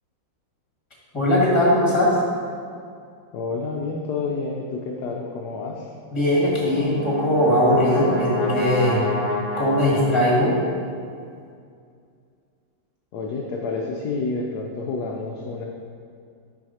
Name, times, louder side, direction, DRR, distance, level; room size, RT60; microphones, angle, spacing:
voice 1, 1.1-2.1 6.1-9.0 9.6-10.6, left 1 dB, 15° left, -5 dB, 1.5 m, -19 dB
voice 2, 3.3-5.9 13.1-15.7, left 3 dB, 70° left, 0 dB, 1.0 m, -29 dB
Brass instrument, 6.2-10.5, left 2 dB, 10° right, 0.8 m, -28 dB
6.0 x 4.7 x 5.6 m, 2.3 s
omnidirectional pair, 2.1 m